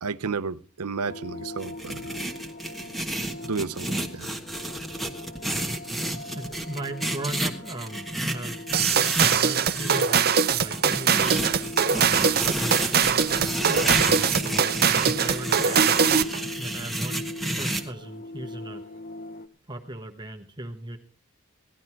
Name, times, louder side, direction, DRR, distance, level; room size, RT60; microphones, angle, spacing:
voice 1, 0.0-2.2 3.4-4.3, right 5 dB, 85° right, 0.7 m, -32 dB
sound 1, 1.0-19.5, left 1 dB, 40° left, 0.9 m, -40 dB
sound 2, 1.6-10.0 10.7-17.8, right 1 dB, ahead, 1.3 m, -31 dB
voice 2, 6.3-11.4 11.9-14.7 15.2-16.0 16.6-17.2 17.5-18.8 19.7-21.0, right 1 dB, 20° right, 1.1 m, -37 dB
sound 3, 8.7-16.4, right 7 dB, 45° right, 0.7 m, -22 dB
17.5 x 12.0 x 4.5 m
head